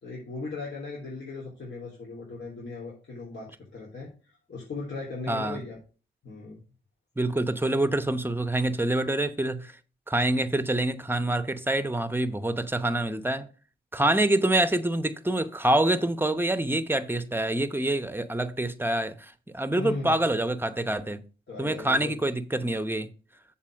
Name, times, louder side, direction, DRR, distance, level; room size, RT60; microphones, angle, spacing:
voice 1, 0.0-5.8 6.2-6.6 19.8-20.2 21.5-22.2, left 3 dB, 60° left, 3.1 m, -38 dB
voice 2, 5.3-5.6 7.2-9.7 10.1-13.5 13.9-21.2 21.6-23.1, right 1 dB, 10° right, 0.9 m, -26 dB
7.4 x 4.2 x 6.2 m
cardioid pair, 60°, 21 cm